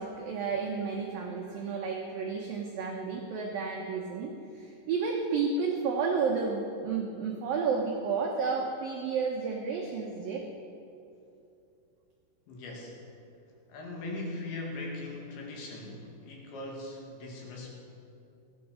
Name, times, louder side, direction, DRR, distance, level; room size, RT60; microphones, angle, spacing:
voice 1, 0.0-10.4, right 5 dB, 80° right, 0 dB, 2.0 m, -31 dB
voice 2, 12.5-13.0 13.7-17.7, left 2 dB, 65° left, -1 dB, 4.3 m, -40 dB
17.5 x 14.0 x 5.1 m, 2.7 s
omnidirectional pair, 5.8 m